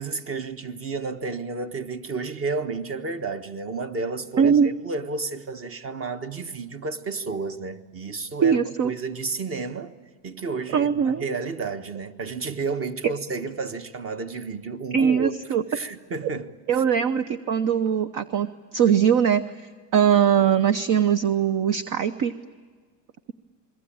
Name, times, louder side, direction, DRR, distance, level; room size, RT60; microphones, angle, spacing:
voice 1, 0.0-10.0 10.2-15.3 15.7-16.8, right 4 dB, 30° right, 1.6 m, -31 dB
voice 2, 4.4-4.7 8.4-8.9 10.7-11.2 14.9-15.6 16.7-19.4 19.9-22.3, right 8 dB, 45° right, 0.9 m, -21 dB
28.5 x 22.5 x 8.8 m
cardioid pair, 135°, 44 cm